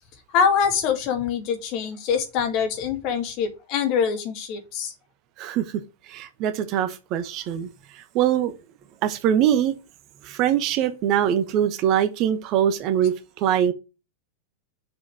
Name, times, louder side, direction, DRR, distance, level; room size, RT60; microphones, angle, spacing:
voice 1, 0.3-4.9, left 7 dB, 40° left, 2.1 m, -24 dB
voice 2, 6.1-8.5 9.0-9.7 10.2-13.7, right 10 dB, 40° right, 1.0 m, -23 dB
6.8 x 4.8 x 4.8 m
figure-of-eight pair, 90°, 0 cm